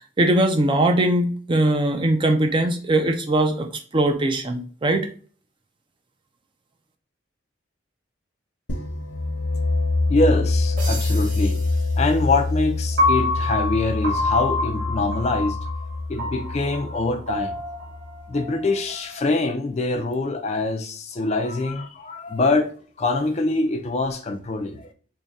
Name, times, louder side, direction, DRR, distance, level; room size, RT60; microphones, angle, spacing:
voice 1, 0.2-3.7 3.9-5.1, right 1 dB, 25° right, 0.4 m, -20 dB
sound 1, 8.7-18.3, left 2 dB, 60° left, 0.8 m, -25 dB
voice 2, 10.1-11.6 12.0-15.6 16.1-17.5 18.3-22.7 23.0-24.9, left 2 dB, 35° left, 0.4 m, -24 dB
sound 2, 10.8-12.8, right 3 dB, 45° right, 1.4 m, -38 dB
Piano, 13.0-19.2, left 2 dB, 65° right, 1.7 m, -27 dB
3.6 x 2.2 x 4.0 m
head